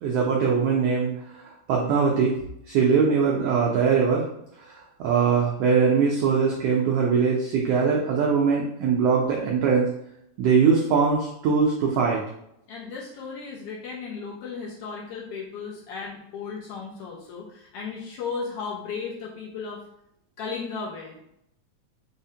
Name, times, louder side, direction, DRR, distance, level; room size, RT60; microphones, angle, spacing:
voice 1, 0.0-1.4 1.7-2.3 2.7-4.3 4.7-9.9 10.4-12.2, right 5 dB, 85° right, -2 dB, 1.4 m, -22 dB
voice 2, 12.7-19.8 20.4-21.2, left 5 dB, 80° left, -4 dB, 1.3 m, -35 dB
5.1 x 2.1 x 2.7 m, 0.76 s
omnidirectional pair, 3.4 m